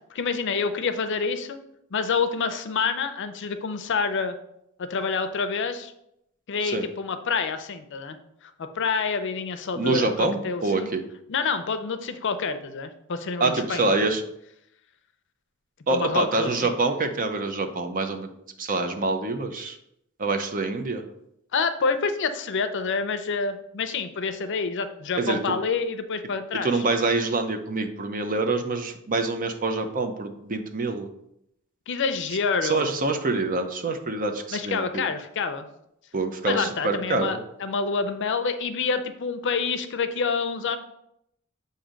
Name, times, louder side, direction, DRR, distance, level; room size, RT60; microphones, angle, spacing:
voice 1, 0.1-1.6 1.9-4.3 4.8-5.9 6.5-8.2 8.4-10.9 11.3-14.1 15.9-16.7 21.5-26.8 31.9-32.9 34.5-35.7 36.4-40.8, left 5 dB, 60° left, 10 dB, 0.5 m, -27 dB
voice 2, 9.8-11.0 13.4-14.2 15.9-18.3 18.6-19.8 20.2-21.0 25.2-25.4 26.6-31.1 32.6-35.0 36.1-37.4, right 3 dB, 40° right, 6 dB, 0.6 m, -26 dB
7.3 x 2.7 x 5.1 m, 0.77 s
head